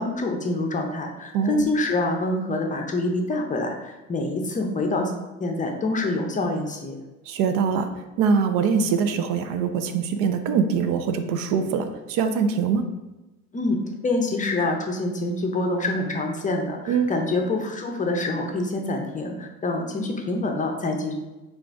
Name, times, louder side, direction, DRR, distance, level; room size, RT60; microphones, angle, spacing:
voice 1, 0.0-5.1 5.4-7.0 13.5-13.8 14.0-21.1, left 2 dB, 20° left, 3 dB, 0.5 m, -26 dB
voice 2, 1.3-1.7 7.3-7.9 8.2-12.9 16.9-17.1, right 6 dB, 70° right, 8 dB, 0.6 m, -23 dB
3.8 x 2.5 x 4.5 m, 1.1 s
supercardioid pair, 105°, 36 cm